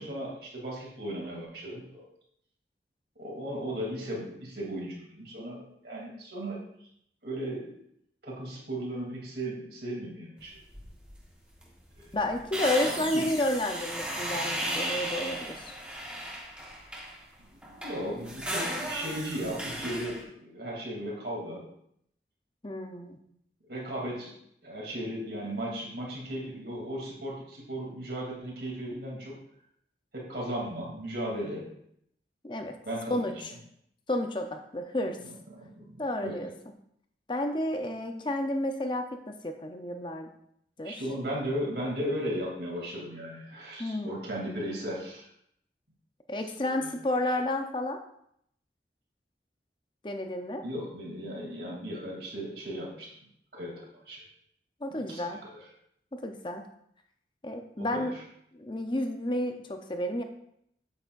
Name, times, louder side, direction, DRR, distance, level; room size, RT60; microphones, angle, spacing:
voice 1, 0.0-2.1 3.2-6.6 7.2-7.7 8.2-10.6 12.0-12.2 12.8-13.2 17.6-21.6 23.7-24.3 24.6-29.4 30.1-31.6 32.8-33.3 35.2-36.4 40.8-45.2 46.8-46.9 50.6-53.1 53.5-54.2 54.9-55.5 57.8-58.1, equal, 65° right, -3 dB, 3.1 m, -36 dB
sound 1, 10.7-11.2 11.5-11.7 11.9-17.2 17.6-20.2, right 1 dB, 5° right, 1.4 m, -35 dB
voice 2, 12.1-15.8 22.6-23.2 32.4-32.8 33.1-33.5 34.1-35.2 36.0-36.5 37.3-40.3 40.8-41.0 43.8-44.2 46.3-48.0 50.0-50.6 54.8-55.4 56.1-56.7 57.4-58.2 58.5-60.2, left 1 dB, 25° left, 5 dB, 0.8 m, -31 dB
8.7 x 8.5 x 2.6 m, 0.72 s
head